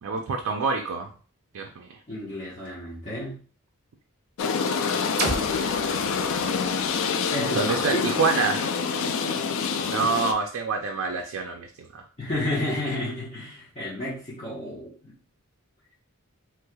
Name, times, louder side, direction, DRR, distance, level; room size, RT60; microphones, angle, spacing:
voice 1, 0.0-1.1 1.5-2.0 7.5-8.7 9.8-12.0, right 4 dB, 65° right, 3 dB, 0.4 m, -27 dB
voice 2, 2.1-3.4 7.3-8.0 12.2-15.1, left 1 dB, 30° left, -9 dB, 1.0 m, -31 dB
sound 1, 4.4-10.3, left 5 dB, 65° left, 0.3 m, -26 dB
sound 2, 5.2-9.0, right 2 dB, 50° right, 0.9 m, -35 dB
3.2 x 3.2 x 2.2 m, 0.40 s
head